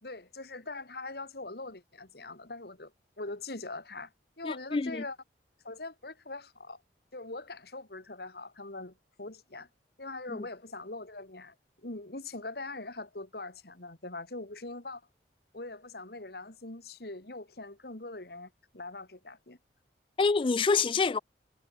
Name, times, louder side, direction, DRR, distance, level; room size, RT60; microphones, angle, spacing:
voice 1, 0.0-2.9 3.2-4.1 4.4-5.2 5.6-6.8 7.1-9.7 10.0-11.5 11.8-15.0 15.5-19.6, left 2 dB, 60° left, 2.2 m, -42 dB
voice 2, 4.4-5.0 10.3-10.4 20.2-21.2, left 4 dB, 30° left, 0.3 m, -27 dB
head